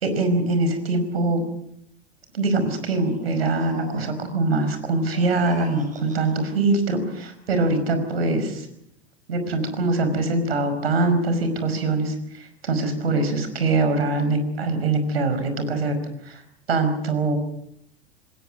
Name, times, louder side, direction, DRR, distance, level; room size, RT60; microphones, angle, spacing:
voice 1, 0.0-1.4 2.3-8.7 9.3-16.4 16.7-17.4, right 2 dB, 65° right, 9 dB, 5.3 m, -23 dB
demon pig, 3.1-4.4 5.0-6.6, right 3 dB, 25° right, 6.1 m, -43 dB
28.5 x 20.0 x 6.3 m, 0.73 s
figure-of-eight pair, 90°, 33 cm